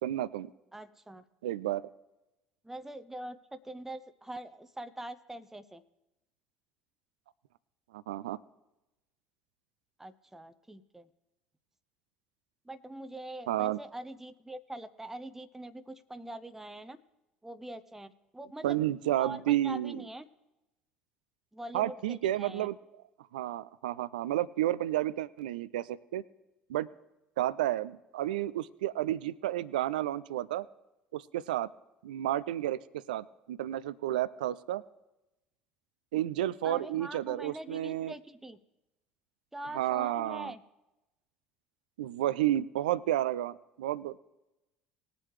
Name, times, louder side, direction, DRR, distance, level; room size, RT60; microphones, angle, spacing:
voice 1, 0.0-0.5 1.4-1.9 7.9-8.4 13.5-13.8 18.6-20.1 21.7-22.8 23.3-26.2 26.7-26.9 27.4-30.7 31.1-31.7 32.0-34.8 36.1-38.1 39.7-40.5 42.0-44.2, right 13 dB, 70° right, 19 dB, 0.4 m, -31 dB
voice 2, 0.7-1.2 2.6-5.8 10.0-11.1 12.7-17.0 17.4-18.8 19.2-20.3 21.5-22.7 36.6-38.6 39.5-40.6, right 1 dB, 5° right, 10 dB, 0.7 m, -43 dB
20.5 x 7.6 x 3.2 m, 0.97 s
figure-of-eight pair, 60°, 5 cm